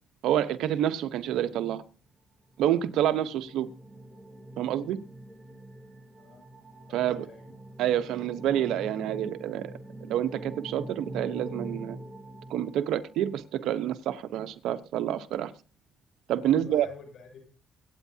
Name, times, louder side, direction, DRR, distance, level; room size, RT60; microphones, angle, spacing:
voice 1, 0.2-1.8 2.6-3.7 4.6-5.0 6.9-7.3 7.8-9.7 10.1-12.0 12.5-15.5 16.3-16.9, right 11 dB, 85° right, 1.0 m, -28 dB
sound 1, 2.5-13.3, right 1 dB, 10° right, 3.3 m, -44 dB
voice 2, 6.9-7.5 16.4-17.4, left 5 dB, 70° left, 7.2 m, -49 dB
24.0 x 9.3 x 2.8 m
cardioid pair, 90°, 0 cm